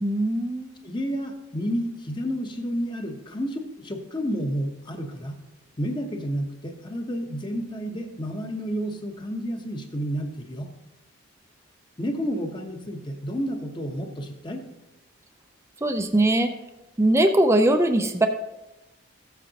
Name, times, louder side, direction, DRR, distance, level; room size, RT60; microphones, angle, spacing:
voice 1, 0.0-0.8 15.8-16.5 17.0-18.3, right 1 dB, 15° right, 5 dB, 0.4 m, -21 dB
voice 2, 0.8-5.4 5.8-10.7 12.0-14.6, equal, 25° left, 4 dB, 0.9 m, -30 dB
14.0 x 8.0 x 2.9 m, 0.99 s
head